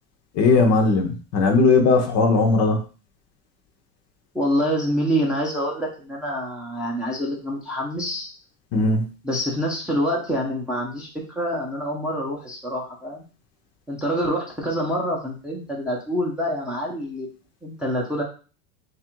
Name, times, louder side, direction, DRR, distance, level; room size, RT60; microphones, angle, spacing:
voice 1, 0.4-2.8 8.7-9.0, left 3 dB, 40° left, 4 dB, 0.7 m, -18 dB
voice 2, 4.3-8.3 9.2-11.1 11.4-13.2 13.9-17.3 17.6-18.2, equal, ahead, -3 dB, 0.7 m, -26 dB
3.3 x 2.5 x 4.4 m, 0.36 s
supercardioid pair, 135°, 41 cm